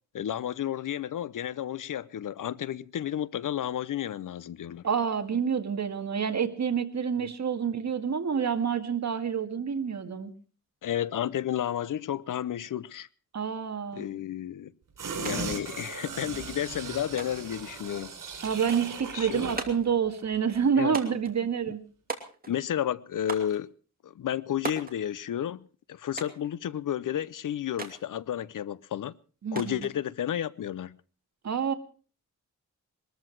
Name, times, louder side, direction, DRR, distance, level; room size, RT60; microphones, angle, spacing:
voice 1, 0.1-4.8 7.2-7.3 10.8-13.1 13.9-14.7 15.2-18.1 19.1-19.5 20.7-21.0 22.5-23.7 24.0-29.1 29.5-31.0, left 10 dB, 80° left, 0.7 m, -32 dB
voice 2, 4.8-10.3 13.3-14.1 18.4-21.8 29.4-29.9 31.4-31.7, right 7 dB, 60° right, 1.9 m, -28 dB
sound 1, 15.0-19.7 20.1-20.2, right 5 dB, 80° right, 4.6 m, -37 dB
sound 2, 15.2-15.4 15.6-16.4 17.2-17.6 18.7-19.0 19.6-19.9 20.9-21.3 22.1-22.6 23.3-23.6 24.6-25.0 26.2-26.5 27.8-28.0 29.6-30.0, right 3 dB, 30° right, 2.7 m, -38 dB
21.5 x 13.5 x 4.7 m
wide cardioid pair, 130°, 31 cm